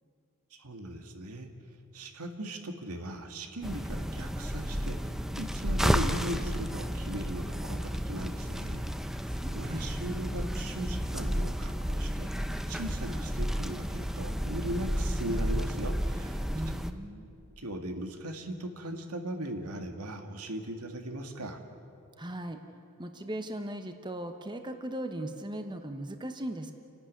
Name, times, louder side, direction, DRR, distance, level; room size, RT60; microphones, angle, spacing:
voice 1, 0.5-1.5 1.9-5.0 5.4-8.9 9.5-12.3 12.7-16.4 17.6-21.6, right 1 dB, 85° right, 5 dB, 2.1 m, -38 dB
sound 1, 3.6-16.9, equal, ahead, 0.7 m, -32 dB
voice 2, 9.3-9.9 16.5-17.3 22.2-22.6 23.0-26.7, right 1 dB, 20° right, 6 dB, 1.1 m, -38 dB
29.5 x 12.0 x 9.7 m, 2.5 s
head